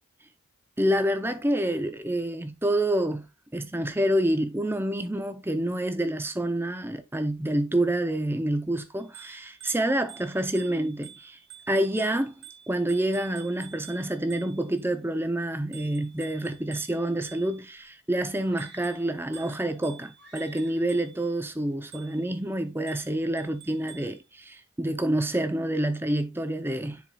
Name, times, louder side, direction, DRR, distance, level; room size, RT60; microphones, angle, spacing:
voice 1, 0.8-3.3 3.5-11.4 11.7-12.3 12.7-27.0, right 1 dB, 10° right, 0.6 m, -27 dB
Bicycle bell, 9.0-14.8 15.7-17.8 18.4-21.3 21.9-22.3 22.9-24.2, right 10 dB, 70° right, 1.9 m, -50 dB
sound 1, 18.4-19.8 20.2-21.0, right 3 dB, 55° right, 1.5 m, -53 dB
10.0 x 4.4 x 2.3 m
head